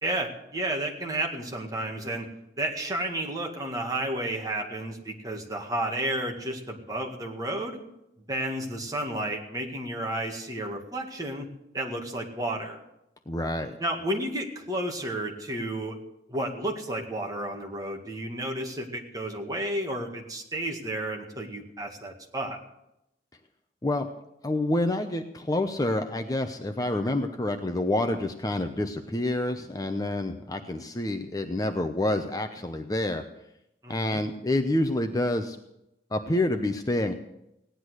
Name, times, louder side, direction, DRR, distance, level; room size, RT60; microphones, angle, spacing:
voice 1, 0.0-2.3 2.6-7.8 8.3-11.5 11.7-12.8 13.8-16.0 16.3-22.6 33.8-34.2, right 1 dB, 20° right, 1 dB, 2.0 m, -32 dB
voice 2, 13.3-13.7 23.8-24.1 24.4-33.2 33.9-35.6 36.1-37.1, left 1 dB, 20° left, 6 dB, 0.7 m, -28 dB
17.0 x 10.5 x 6.4 m, 0.86 s
head